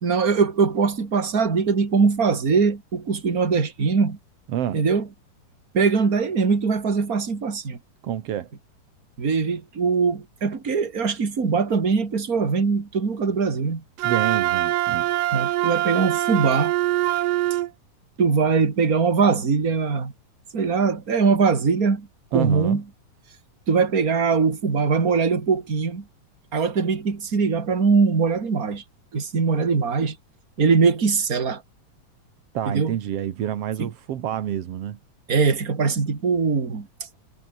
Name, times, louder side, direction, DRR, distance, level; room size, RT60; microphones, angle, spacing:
voice 1, 0.0-4.2 4.7-5.1 5.7-7.8 9.2-13.8 15.3-16.7 18.2-20.1 20.5-22.8 23.7-26.0 26.5-28.8 29.1-30.2 30.6-31.6 32.7-32.9 33.8-33.9 35.3-36.9, right 5 dB, 25° right, 2.9 m, -21 dB
voice 2, 4.5-4.8 8.0-8.5 14.0-15.1 22.3-22.8 32.5-35.0, right 10 dB, 55° right, 2.0 m, -28 dB
Wind instrument woodwind instrument, 14.0-17.7, right 15 dB, 80° right, 1.4 m, -23 dB
omnidirectional pair, 3.8 m